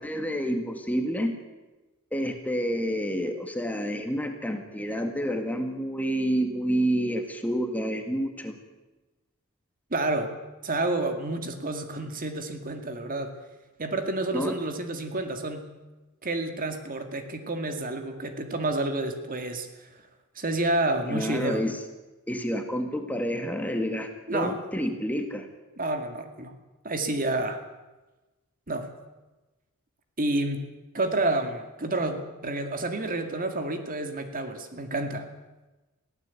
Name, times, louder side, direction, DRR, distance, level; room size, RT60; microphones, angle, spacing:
voice 1, 0.0-1.4 2.1-8.6 14.3-14.5 21.1-21.8 22.3-25.5, equal, 5° left, 5 dB, 1.9 m, -29 dB
voice 2, 9.9-10.4 10.6-13.3 13.8-15.6 16.2-19.9 20.4-21.7 24.3-24.6 25.8-26.5 26.8-27.6 28.7-28.9 30.2-30.7 30.9-35.3, right 2 dB, 40° right, 6 dB, 2.1 m, -29 dB
22.5 x 16.0 x 8.4 m, 1.1 s
head